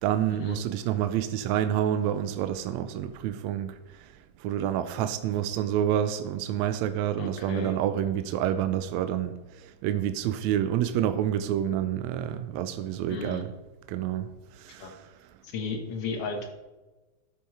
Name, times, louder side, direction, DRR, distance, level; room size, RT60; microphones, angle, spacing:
voice 1, 0.0-3.8 4.4-13.5 13.9-14.3 14.6-15.0, right 11 dB, 80° right, 1.8 m, -28 dB
voice 2, 7.2-7.8 13.1-13.4 14.8-14.9 15.4-16.5, left 4 dB, 60° left, 1.9 m, -34 dB
11.5 x 7.0 x 4.7 m
omnidirectional pair, 3.4 m